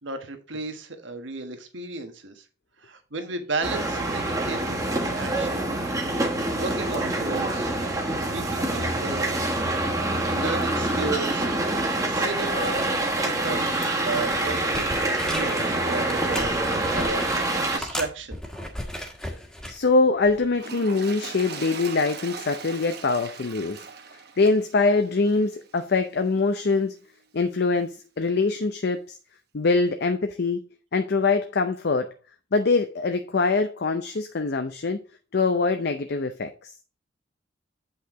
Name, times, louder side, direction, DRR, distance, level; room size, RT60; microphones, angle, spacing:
voice 1, 0.0-2.4 2.8-5.7 6.4-7.7 8.1-9.5 9.9-11.5 12.0-16.7 16.9-17.3 17.7-18.4, right 3 dB, 80° right, 1.5 m, -34 dB
sound 1, 3.6-17.8, right 2 dB, 20° right, 1.6 m, -26 dB
sound 2, 14.1-15.7 16.1-17.4 17.8-19.8 20.3-20.5, equal, 5° left, 1.6 m, -35 dB
voice 2, 19.7-23.8 24.1-27.0 27.3-29.2 29.5-30.6 30.9-32.1 32.5-35.0 35.3-36.7, left 3 dB, 60° left, 0.6 m, -23 dB
Toilet flush, 20.5-26.0 26.7-26.8, right 5 dB, 60° right, 1.1 m, -40 dB
8.1 x 5.6 x 3.7 m
head